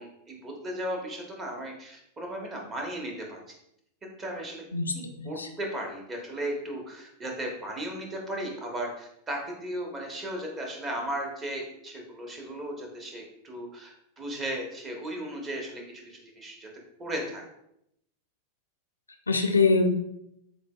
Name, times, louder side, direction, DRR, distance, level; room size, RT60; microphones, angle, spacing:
voice 1, 0.0-3.4 4.2-4.6 4.9-16.7 17.0-17.4, right 1 dB, 25° right, 1 dB, 1.1 m, -36 dB
voice 2, 19.3-20.0, left 3 dB, 75° left, 5 dB, 0.4 m, -23 dB
6.8 x 2.3 x 2.3 m, 0.77 s
figure-of-eight pair, 90°, 0 cm